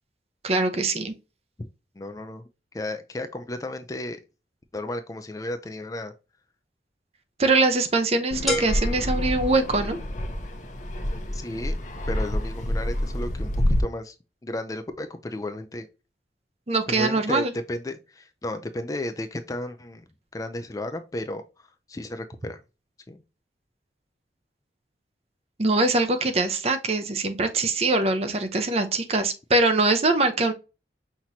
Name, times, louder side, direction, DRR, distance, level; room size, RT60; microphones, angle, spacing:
voice 1, 0.4-1.1 7.4-10.0 16.7-17.5 25.6-30.5, right 2 dB, 35° right, 0.7 m, -23 dB
voice 2, 2.0-2.4 2.7-4.2 4.7-6.1 11.3-11.8 12.1-13.5 13.8-14.2 14.4-15.9 16.9-20.0 20.3-22.6 23.1-23.2, left 1 dB, 20° left, 0.4 m, -33 dB
Fixed-wing aircraft airplane, 8.3-13.8, left 1 dB, 45° left, 0.7 m, -28 dB
sound 1, 8.5-10.3, left 1 dB, ahead, 1.0 m, -32 dB
5.8 x 3.0 x 2.6 m
head